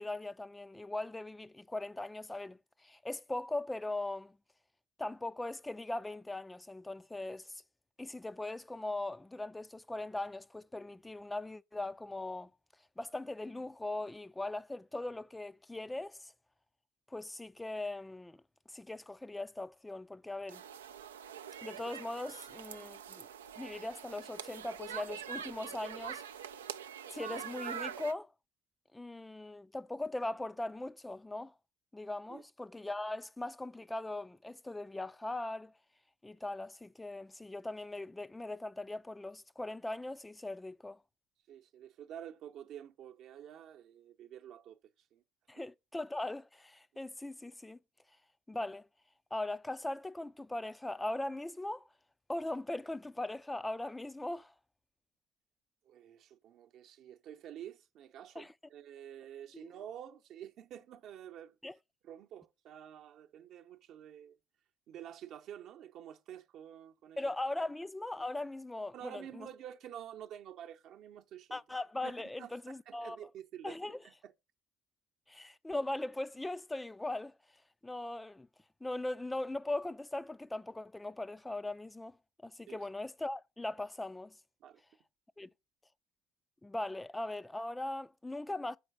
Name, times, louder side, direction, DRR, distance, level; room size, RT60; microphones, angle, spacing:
voice 1, 0.0-4.4 5.0-7.6 8.0-12.5 13.0-16.3 17.1-18.4 18.7-20.6 21.6-23.3 23.6-26.2 27.1-28.3 28.9-31.5 31.9-35.7 36.2-41.0 45.5-47.8 48.5-48.9 49.3-51.9 52.3-54.5 58.4-58.5 59.5-59.7 61.6-61.8 67.2-69.5 71.5-73.3 73.6-74.0 75.3-77.3 77.8-78.5 78.8-82.2 82.4-84.3 85.4-85.5 86.6-88.8, left 2 dB, 10° left, 0.4 m, -40 dB
sound 1, 20.5-28.1, right 9 dB, 90° right, 0.3 m, -44 dB
voice 2, 41.5-44.8 45.1-45.2 45.6-45.7 55.9-61.5 62.0-64.4 64.9-67.2 68.9-71.6 72.0-72.5 72.9-73.8 74.0-74.3 82.7-82.8 84.6-84.8, right 10 dB, 60° right, 0.8 m, -49 dB
6.6 x 4.5 x 6.5 m
hypercardioid pair, 60°, 0 cm